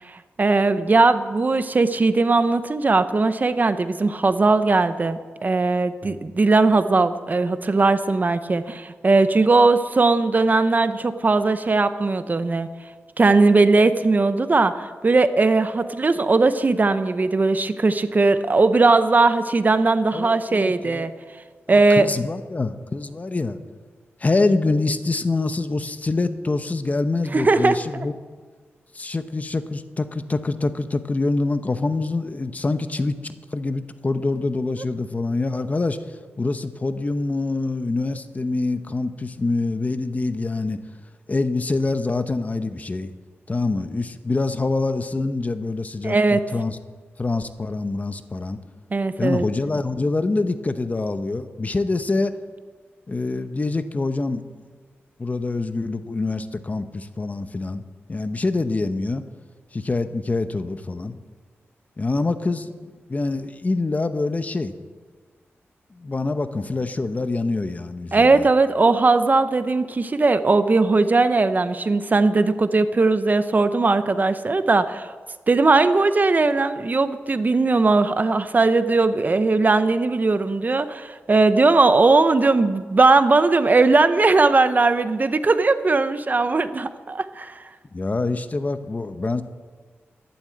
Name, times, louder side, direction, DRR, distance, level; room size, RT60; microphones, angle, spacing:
voice 1, 0.1-12.7 13.2-21.1 21.7-22.1 27.3-27.8 46.0-46.4 48.9-49.4 68.1-75.1 75.5-87.6, right 3 dB, 40° right, 11 dB, 0.8 m, -19 dB
voice 2, 20.1-21.1 21.7-23.6 24.2-28.2 28.9-33.2 33.5-40.8 41.3-43.1 43.5-46.8 47.2-48.6 49.2-52.3 53.1-54.4 55.2-57.8 58.1-59.2 59.7-61.2 62.0-62.7 63.1-64.8 65.9-68.5 87.9-89.4, left 3 dB, 35° left, 10 dB, 0.9 m, -25 dB
12.5 x 11.5 x 7.8 m, 1.5 s
cardioid pair, 80°, 5 cm